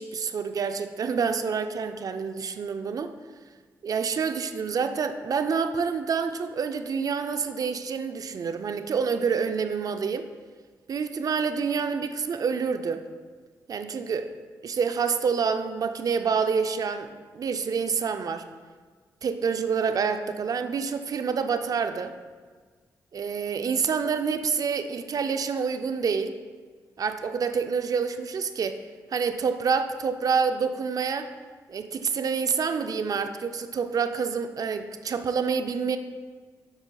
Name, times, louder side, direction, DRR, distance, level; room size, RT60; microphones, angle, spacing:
voice 1, 0.0-3.1 3.8-10.3 10.9-13.0 13.7-14.3 14.6-18.5 19.2-22.1 23.1-26.3 27.0-28.8 29.1-31.3 31.7-36.0, right 6 dB, 55° right, 9 dB, 0.4 m, -27 dB
7.9 x 5.3 x 2.3 m, 1.5 s
supercardioid pair, 55°, 7 cm